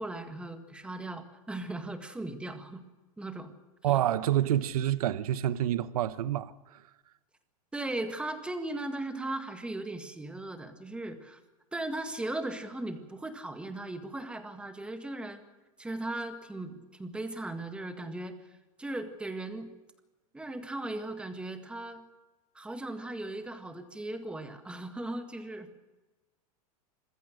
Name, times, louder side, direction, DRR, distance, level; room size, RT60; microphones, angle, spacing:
voice 1, 0.0-2.8 3.2-3.5 7.7-11.4 11.7-15.4 15.8-18.4 18.8-19.7 20.3-22.0 22.5-25.8, right 2 dB, 5° right, 1.8 m, -37 dB
voice 2, 3.8-6.9, right 12 dB, 85° right, 1.0 m, -28 dB
26.5 x 15.5 x 6.5 m
supercardioid pair, 155°, 18 cm